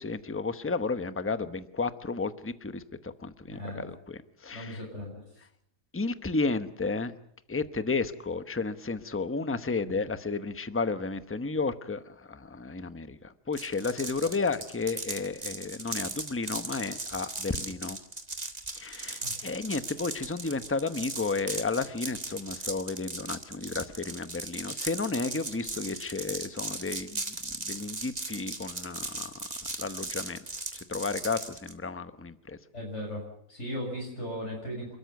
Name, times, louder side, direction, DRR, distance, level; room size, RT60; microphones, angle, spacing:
voice 1, 0.0-4.8 5.9-7.1 7.5-18.0 18.8-29.5 29.8-30.4 30.7-32.6, left 3 dB, 10° left, 11 dB, 0.8 m, -32 dB
voice 2, 3.5-3.8 4.5-5.2 19.2-19.3 32.7-33.2 33.5-35.0, equal, 55° left, -3 dB, 7.1 m, -37 dB
sound 1, 13.5-31.7, right 2 dB, 30° right, 2.1 m, -37 dB
29.5 x 13.5 x 9.4 m, 0.72 s
omnidirectional pair, 1.5 m